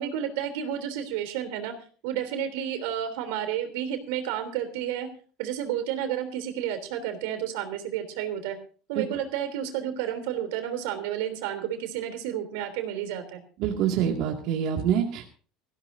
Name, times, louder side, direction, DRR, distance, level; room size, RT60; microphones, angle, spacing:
voice 1, 0.0-1.7 2.0-5.1 5.4-8.6 8.9-13.4, right 10 dB, 85° right, 8 dB, 3.3 m, -31 dB
voice 2, 13.6-15.3, right 9 dB, 55° right, 1 dB, 2.1 m, -26 dB
18.5 x 15.5 x 2.7 m, 0.40 s
cardioid pair, 160°, 0 cm